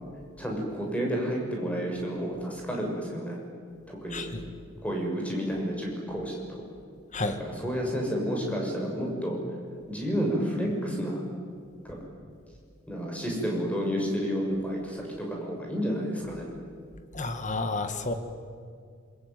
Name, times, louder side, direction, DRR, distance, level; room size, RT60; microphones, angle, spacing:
voice 1, 0.4-3.4 3.9-4.3 4.8-6.6 7.3-9.4 9.9-11.2 11.8-12.0 12.9-16.5, equal, 5° left, -1 dB, 6.8 m, -30 dB
voice 2, 4.1-4.4 7.1-7.4 17.1-18.1, left 3 dB, 35° left, 8 dB, 1.7 m, -31 dB
27.5 x 22.5 x 9.4 m, 2.2 s
head